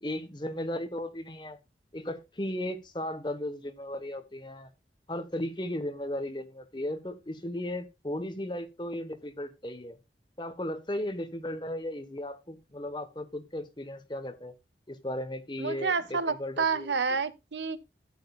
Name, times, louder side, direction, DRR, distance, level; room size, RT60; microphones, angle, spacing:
voice 1, 0.0-1.6 1.9-4.7 5.1-10.0 10.4-14.5 14.9-17.2, left 1 dB, 25° left, 1.1 m, -36 dB
voice 2, 15.6-17.8, right 5 dB, 90° right, 0.8 m, -29 dB
12.5 x 9.1 x 2.3 m
head